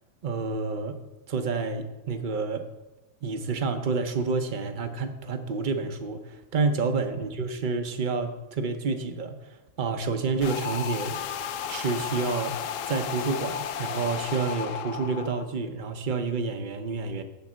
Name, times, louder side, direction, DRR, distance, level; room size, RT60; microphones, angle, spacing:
voice 1, 0.2-1.0 1.3-2.6 3.2-11.2 11.7-12.6 12.9-17.2, right 4 dB, 40° right, 7 dB, 0.8 m, -29 dB
sound 1, 10.4-15.4, left 8 dB, 65° left, 0.8 m, -33 dB
11.5 x 4.1 x 7.5 m, 1.0 s
omnidirectional pair, 1.7 m